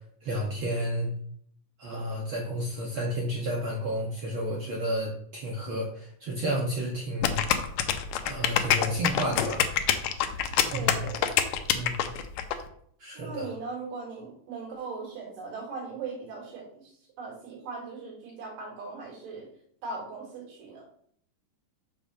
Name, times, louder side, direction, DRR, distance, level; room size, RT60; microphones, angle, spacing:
voice 1, 0.2-1.1 1.8-7.4 8.2-9.6 10.6-11.0 11.7-12.0 13.0-13.5, equal, 65° right, -2 dB, 1.3 m, -31 dB
sound 1, 7.2-12.5, left 10 dB, 85° left, 2.2 m, -25 dB
voice 2, 10.7-11.2 13.2-19.5 19.8-20.8, right 4 dB, 80° right, -3 dB, 3.7 m, -39 dB
6.9 x 3.5 x 6.1 m, 0.64 s
omnidirectional pair, 3.7 m